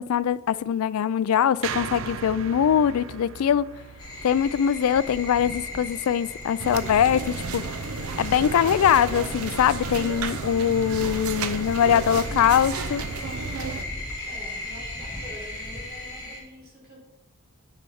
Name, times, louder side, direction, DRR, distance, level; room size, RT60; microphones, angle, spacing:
voice 1, 0.0-3.7 4.2-7.6 8.2-13.0, left 8 dB, 80° left, 0.3 m, -22 dB
sound 1, 1.6-5.9, right 8 dB, 60° right, 0.3 m, -38 dB
sound 2, 4.0-16.4, left 2 dB, 20° left, 2.7 m, -38 dB
sound 3, 6.6-13.8, right 4 dB, 80° right, 0.7 m, -32 dB
voice 2, 11.5-12.6 14.2-17.0, equal, 45° right, 2.8 m, -44 dB
9.8 x 4.5 x 5.5 m
head